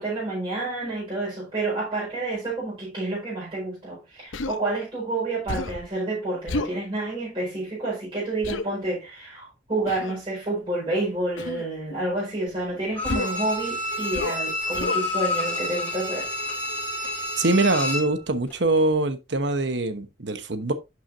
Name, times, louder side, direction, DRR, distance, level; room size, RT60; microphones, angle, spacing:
voice 1, 0.0-16.3, right 2 dB, 25° right, 4.9 m, -29 dB
Human voice, 4.3-4.6 5.5-5.9 6.5-6.8 8.4-8.7 9.9-10.2 11.4-11.7 13.0-13.4 14.1-14.4 14.7-15.0, left 2 dB, 85° left, 0.8 m, -30 dB
Bowed string instrument, 12.9-18.2 18.5-18.6, left 2 dB, 10° left, 4.7 m, -29 dB
voice 2, 17.4-20.7, right 2 dB, 65° right, 1.1 m, -23 dB
11.5 x 6.1 x 2.7 m
head